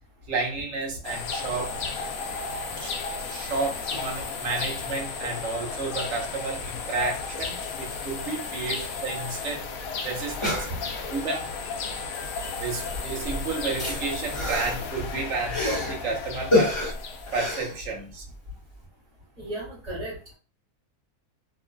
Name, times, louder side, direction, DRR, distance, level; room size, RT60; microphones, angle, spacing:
voice 1, 0.3-1.8 2.8-9.7 10.0-10.7 11.1-11.5 12.6-16.8 17.3-18.2, right 3 dB, 60° right, 1 dB, 0.9 m, -31 dB
sound 1, 1.0-17.8, left 4 dB, 70° left, 0.9 m, -34 dB
sound 2, 9.5-9.6 9.8-9.9 10.2-11.2 12.3-12.6 12.8-16.0 16.5-18.4 18.7-18.8, left 2 dB, 20° left, 1.0 m, -28 dB
voice 2, 19.4-20.3, right 1 dB, 30° right, -9 dB, 1.5 m, -35 dB
3.0 x 2.4 x 2.2 m, 0.36 s
omnidirectional pair, 1.6 m